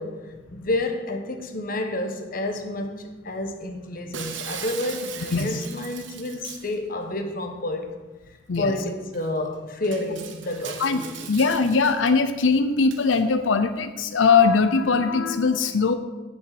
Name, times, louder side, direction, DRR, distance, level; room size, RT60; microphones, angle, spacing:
voice 1, 0.0-7.9 8.6-11.3, left 1 dB, 50° left, 1.2 m, -30 dB
Shatter, 4.1-6.7 8.5-8.6 9.1-9.2 9.8-12.1 12.9-13.2, right 7 dB, 75° right, 1.0 m, -39 dB
voice 2, 10.8-15.9, left 4 dB, 90° left, 0.6 m, -21 dB
7.6 x 7.0 x 7.9 m
head